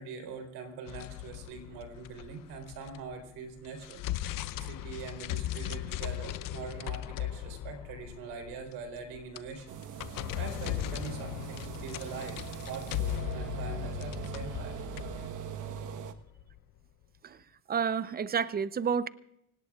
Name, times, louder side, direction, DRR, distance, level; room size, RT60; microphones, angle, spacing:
voice 1, 0.0-9.8 10.1-14.8, right 5 dB, 75° right, 4.0 m, -43 dB
sound 1, 0.9-3.2 3.6-16.6, left 13 dB, 60° left, 0.8 m, -38 dB
sound 2, 9.7-16.1, right 8 dB, 55° right, 1.3 m, -41 dB
voice 2, 17.7-19.1, right 7 dB, 25° right, 0.7 m, -30 dB
26.0 x 18.5 x 2.4 m
supercardioid pair, 80°, 37 cm